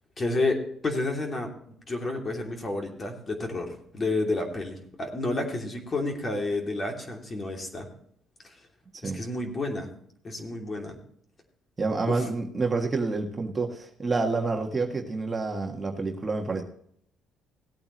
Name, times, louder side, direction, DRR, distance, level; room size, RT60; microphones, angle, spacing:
voice 1, 0.2-0.6 0.8-1.5 1.9-7.9 9.0-9.9 10.2-11.0 12.1-12.3, left 2 dB, 30° left, 2 dB, 2.9 m, -30 dB
voice 2, 11.8-16.6, right 3 dB, 25° right, 2 dB, 1.6 m, -28 dB
17.5 x 8.6 x 3.1 m, 0.67 s
cardioid pair, 115°, 0 cm